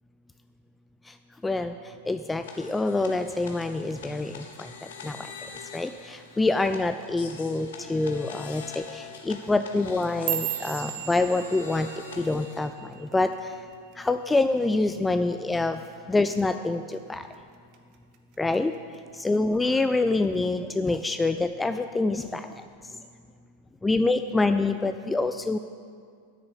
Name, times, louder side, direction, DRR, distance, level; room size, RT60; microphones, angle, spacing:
voice 1, 1.4-5.3 5.7-11.9 12.2-13.6 14.0-15.8 16.1-17.3 18.4-18.7 19.1-22.7 23.8-25.6, left 2 dB, 10° left, 9 dB, 0.3 m, -26 dB
sound 1, 2.4-12.7, left 5 dB, 60° left, 1.1 m, -44 dB
sound 2, 9.8-14.2 14.5-14.9 15.3-15.7 16.1-16.3 16.9-17.3 17.7-18.6 18.9-19.4 20.1-20.2, right 14 dB, 40° right, 0.8 m, -36 dB
8.4 x 6.7 x 8.4 m, 2.2 s
figure-of-eight pair, 90°, 0 cm